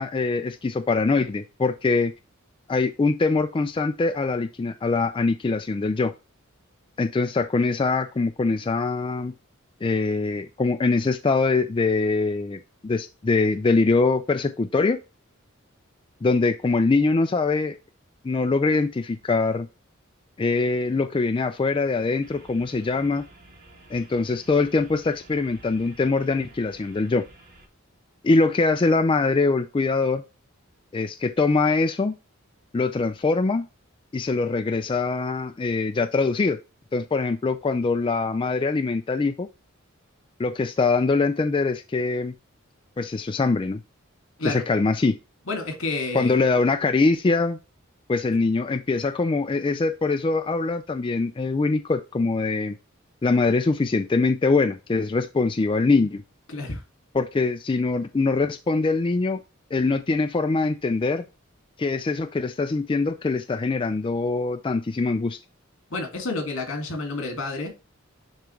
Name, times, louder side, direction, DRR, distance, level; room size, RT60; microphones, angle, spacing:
voice 1, 0.0-2.1 2.7-6.1 7.0-9.3 9.8-15.0 16.2-17.8 18.2-19.7 20.4-23.2 23.9-27.2 28.2-30.2 30.9-32.1 32.7-33.7 34.1-36.6 36.9-39.5 40.4-42.3 43.0-43.8 44.4-45.2 46.1-47.6 48.1-52.8 53.2-56.2 57.1-59.4 59.7-61.2 61.8-65.4, left 3 dB, 25° left, 0.3 m, -23 dB
sound 1, 22.2-27.7, right 2 dB, 45° right, 2.0 m, -51 dB
voice 2, 45.5-46.4 56.5-56.8 65.9-67.7, left 3 dB, 70° left, 2.3 m, -29 dB
10.5 x 3.5 x 3.2 m
head